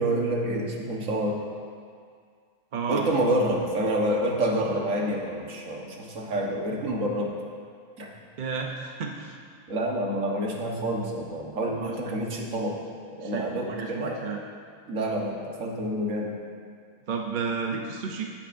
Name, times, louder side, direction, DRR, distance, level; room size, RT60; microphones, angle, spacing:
voice 1, 0.0-1.4 2.9-7.3 8.0-8.1 9.7-12.8 13.1-14.2 14.9-16.3, right 1 dB, 70° right, -1 dB, 1.6 m, -28 dB
voice 2, 2.7-3.1 8.4-9.3 11.7-11.9 13.2-14.4 17.1-18.3, right 5 dB, 45° right, 1 dB, 0.7 m, -32 dB
16.5 x 8.7 x 2.6 m, 2.1 s
omnidirectional pair, 1.4 m